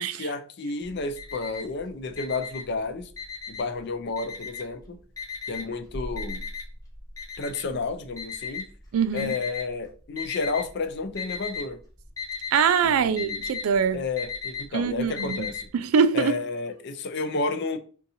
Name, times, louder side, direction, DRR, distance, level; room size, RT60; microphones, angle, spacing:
voice 1, 0.0-3.1 3.5-5.0 5.5-6.4 7.4-8.7 9.1-11.8 12.8-13.4 13.9-15.7 16.1-17.8, left 3 dB, 55° left, 0.5 m, -31 dB
Alarm, 0.8-1.8 2.1-3.8 4.2-4.8 5.2-9.6 10.2-10.8 11.0-11.7 11.9-15.6, left 5 dB, 15° left, 1.0 m, -35 dB
voice 2, 8.9-9.3 12.5-14.0 14.7-15.5 15.7-16.4, right 6 dB, 80° right, 0.4 m, -23 dB
3.6 x 2.8 x 2.6 m
head